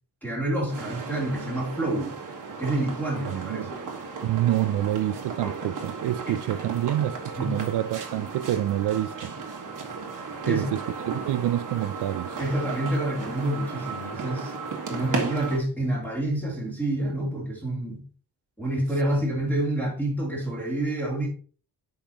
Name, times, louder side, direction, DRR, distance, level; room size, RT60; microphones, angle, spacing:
voice 1, 0.2-2.2 2.6-3.7 6.3-6.4 7.4-7.5 10.4-10.6 12.4-14.5 14.9-18.0 18.6-21.3, right 1 dB, 5° left, 3.1 m, -28 dB
sound 1, 0.7-15.6, right 4 dB, 50° right, 1.6 m, -35 dB
voice 2, 3.3-3.7 4.2-9.3 10.5-10.8 11.3-12.4, right 13 dB, 75° right, 0.5 m, -27 dB
8.7 x 5.6 x 2.9 m
wide cardioid pair, 155°, 41 cm